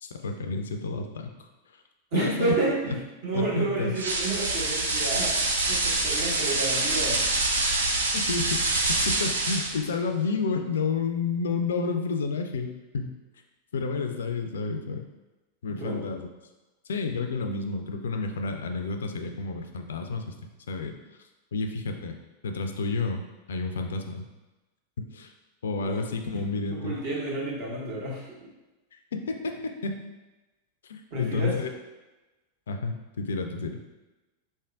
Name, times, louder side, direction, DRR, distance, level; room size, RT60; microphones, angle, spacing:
voice 1, 0.0-1.5 2.1-2.5 2.9-3.0 3.3-3.9 8.3-13.2 13.7-15.1 15.6-16.3 16.9-20.3 20.7-21.0 21.5-22.2 22.4-23.2 23.5-24.2 25.1-25.3 25.6-26.9 29.1-30.0 30.9-31.7 32.7-33.8, left 4 dB, 65° left, 5 dB, 0.3 m, -30 dB
voice 2, 2.1-7.3 15.7-16.0 25.8-26.0 26.3-26.4 26.7-28.3 31.1-31.5, right 2 dB, 50° right, -5 dB, 1.4 m, -30 dB
sound 1, 4.0-9.9, right 2 dB, 70° right, 0.5 m, -26 dB
4.1 x 3.6 x 2.4 m, 1.1 s
figure-of-eight pair, 90°, 0 cm